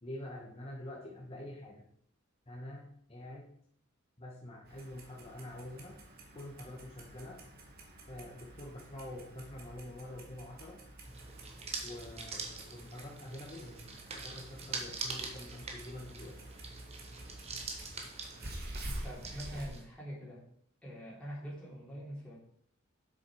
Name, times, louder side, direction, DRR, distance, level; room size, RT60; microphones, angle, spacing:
voice 1, 0.0-1.8 2.5-3.5 4.2-6.0 6.3-7.4 8.1-10.8 11.8-16.3, left 1 dB, 30° left, -2 dB, 1.3 m, -46 dB
Clock, 4.6-19.7, right 1 dB, 50° right, 1.8 m, -49 dB
sound 1, 11.0-19.8, right 4 dB, 30° right, 1.3 m, -44 dB
voice 2, 19.0-20.4 20.8-22.4, equal, 5° left, -7 dB, 3.1 m, -44 dB
8.0 x 6.9 x 4.8 m, 0.65 s
head